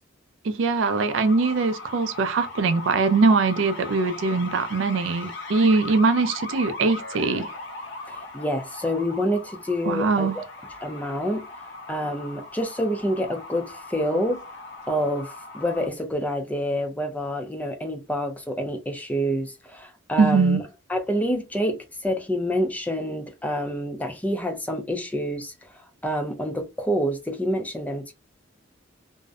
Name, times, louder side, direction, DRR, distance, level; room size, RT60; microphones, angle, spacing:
voice 1, 0.4-7.5 9.8-10.4 20.2-20.6, right 4 dB, 75° right, 0.4 m, -22 dB
sound 1, 0.8-15.9, left 3 dB, 70° left, 0.8 m, -39 dB
voice 2, 8.1-10.4 10.8-11.4 11.9-14.4 14.9-20.6 20.9-25.7 26.0-28.1, equal, 10° left, 0.4 m, -27 dB
2.6 x 2.0 x 2.3 m
head